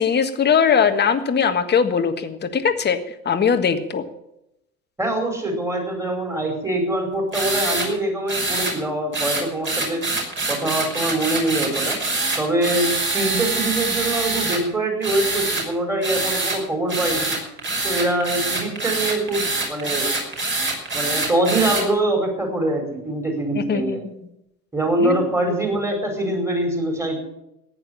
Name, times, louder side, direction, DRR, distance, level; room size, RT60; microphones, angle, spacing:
voice 1, 0.0-3.0 3.3-4.0 23.5-24.2 25.0-25.3, left 6 dB, 20° left, 7 dB, 1.7 m, -20 dB
voice 2, 5.0-10.0 10.5-12.0 12.4-17.3 17.8-20.1 20.9-24.0 24.7-27.2, right 1 dB, 5° right, 3 dB, 5.0 m, -24 dB
sound 1, 7.3-7.9 8.3-8.7 9.1-14.6 15.0-15.6 16.0-16.6 16.9-21.8, right 3 dB, 25° right, 5.7 m, -24 dB
14.5 x 9.8 x 8.6 m, 0.85 s
figure-of-eight pair, 85°, 47 cm